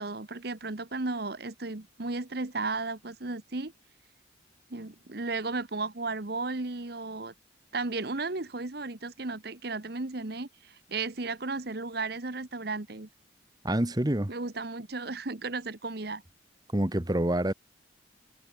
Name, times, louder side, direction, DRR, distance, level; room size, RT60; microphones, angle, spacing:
voice 1, 0.0-3.7 4.7-7.3 7.7-13.1 14.3-16.2, right 3 dB, 55° right, 1.3 m, -34 dB
voice 2, 13.6-14.3 16.7-17.5, right 1 dB, 20° right, 1.2 m, -26 dB
head